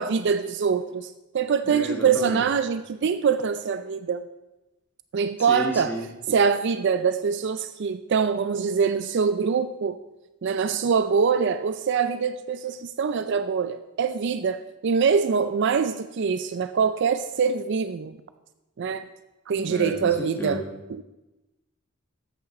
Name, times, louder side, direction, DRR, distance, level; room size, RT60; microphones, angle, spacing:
voice 1, 0.0-4.2 5.1-5.9 6.3-10.0 10.4-18.2 18.8-19.1 19.5-20.6 20.9-21.0, right 6 dB, 60° right, 11 dB, 0.4 m, -24 dB
voice 2, 1.6-2.4 5.5-6.1 19.6-20.7, equal, 10° left, 1 dB, 1.4 m, -32 dB
13.0 x 8.2 x 4.1 m, 1.0 s
head